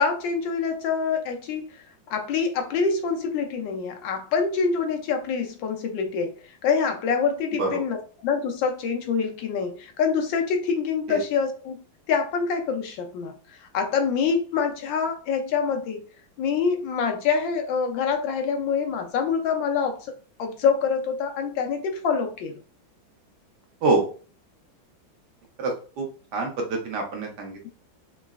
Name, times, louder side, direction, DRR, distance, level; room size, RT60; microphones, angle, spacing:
voice 1, 0.0-11.8 12.1-16.1 16.4-20.1 20.4-22.6, left 5 dB, 75° left, 1.2 m, -26 dB
voice 2, 25.6-26.0 26.3-27.7, right 3 dB, 65° right, 1.1 m, -26 dB
3.8 x 3.0 x 2.4 m
omnidirectional pair, 2.2 m